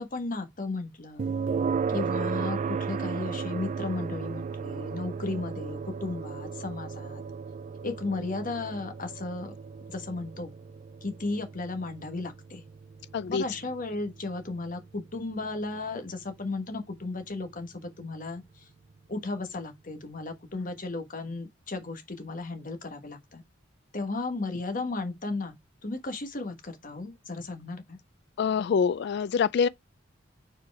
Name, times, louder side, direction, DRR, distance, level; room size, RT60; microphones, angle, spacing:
voice 1, 0.0-1.3 1.9-7.2 7.8-9.5 9.9-10.5 11.0-12.6 13.3-18.7 19.1-23.4 23.9-25.5 25.8-28.0, left 3 dB, 45° left, 1.4 m, -35 dB
sound 1, 1.2-16.1, right 5 dB, 40° right, 0.3 m, -35 dB
voice 2, 13.1-13.4 28.4-29.7, left 6 dB, 60° left, 0.3 m, -25 dB
4.7 x 4.4 x 4.7 m
head